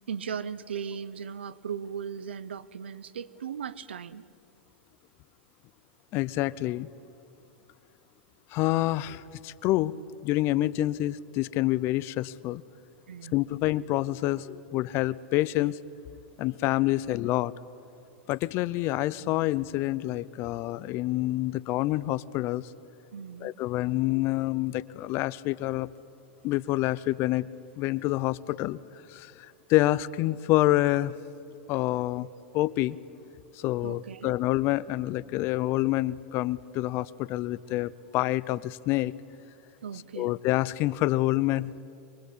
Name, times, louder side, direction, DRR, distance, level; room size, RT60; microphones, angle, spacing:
voice 1, 0.1-4.2 13.1-13.4 23.1-23.5 33.8-34.4 39.8-40.3, right 7 dB, 90° right, 18 dB, 0.9 m, -37 dB
voice 2, 6.1-6.9 8.5-9.9 10.2-12.6 13.3-15.8 16.4-17.5 18.3-22.7 23.4-25.9 26.4-27.5 27.8-28.8 29.1-31.2 31.7-32.3 32.5-33.0 33.5-39.1 40.2-41.7, left 17 dB, 45° left, 19 dB, 0.7 m, -27 dB
25.0 x 22.5 x 8.6 m, 2.6 s
hypercardioid pair, 120°, 6 cm